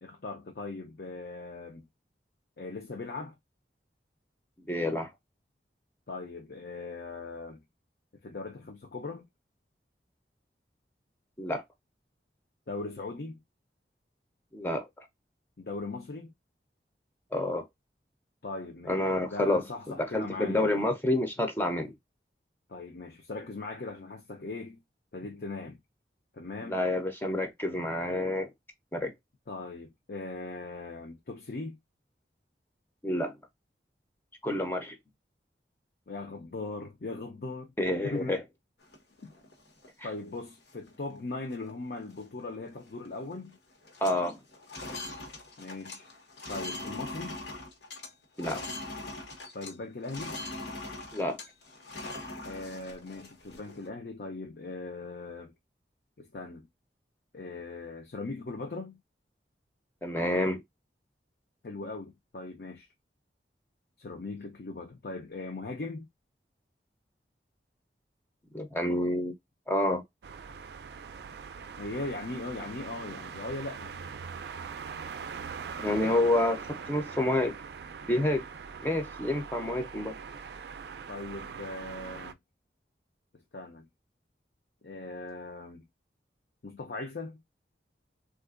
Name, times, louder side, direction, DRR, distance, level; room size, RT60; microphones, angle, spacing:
voice 1, 0.0-1.9 2.6-3.3 6.1-7.6 8.2-9.3 12.7-13.4 15.6-16.3 18.4-19.0 19.3-20.8 22.7-24.8 25.1-25.8 26.3-26.9 29.5-31.8 36.1-37.7 38.0-38.4 39.2-39.3 40.0-43.6 45.6-46.1 46.5-47.4 49.5-50.4 52.4-55.5 56.2-56.7 57.3-59.0 61.6-62.9 64.0-66.1 71.8-74.0 81.1-82.4 83.5-83.9 84.8-85.8 86.6-87.4, left 3 dB, 60° left, 0.5 m, -39 dB
voice 2, 4.7-5.1 11.4-11.6 14.5-14.9 17.3-17.6 18.9-21.9 26.6-28.5 28.9-29.1 33.0-33.4 34.4-35.0 37.8-38.4 44.0-44.4 48.4-48.6 51.1-51.4 60.0-60.6 68.5-69.3 69.7-70.0 75.8-77.5 78.0-78.5 78.8-80.2, left 1 dB, 10° left, 0.5 m, -28 dB
sound 1, 38.8-39.9 40.4-40.5 40.7-41.1 41.5-41.7 42.0-43.1 43.3-43.6 43.8-49.8 50.0-53.9, left 2 dB, 75° left, 1.1 m, -42 dB
sound 2, 70.2-82.3, right 6 dB, 65° right, 0.4 m, -42 dB
3.5 x 2.4 x 2.4 m
head